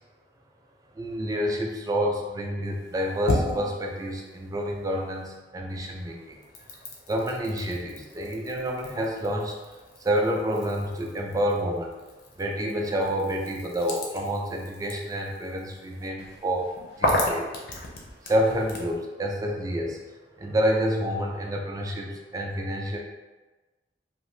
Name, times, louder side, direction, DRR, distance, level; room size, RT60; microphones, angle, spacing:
voice 1, 1.0-6.4 7.1-9.6 10.0-11.9 12.4-16.7 17.0-17.6 18.3-20.0 20.4-23.0, equal, 20° right, 0 dB, 0.4 m, -28 dB
sound 1, 2.7-5.4 5.7-19.0, left 1 dB, 60° left, 0.6 m, -35 dB
2.5 x 2.4 x 3.1 m, 1.2 s
head